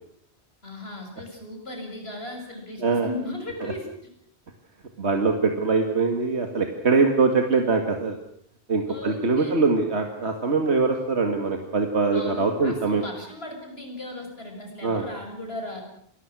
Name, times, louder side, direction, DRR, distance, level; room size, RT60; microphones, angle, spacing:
voice 1, 0.6-3.9 8.9-9.6 12.1-15.8, left 1 dB, 65° left, 3 dB, 7.2 m, -37 dB
voice 2, 5.0-8.2 8.7-13.0 14.8-15.0, right 4 dB, 85° right, 4 dB, 2.4 m, -23 dB
28.5 x 21.0 x 6.2 m, 0.67 s
omnidirectional pair, 1.1 m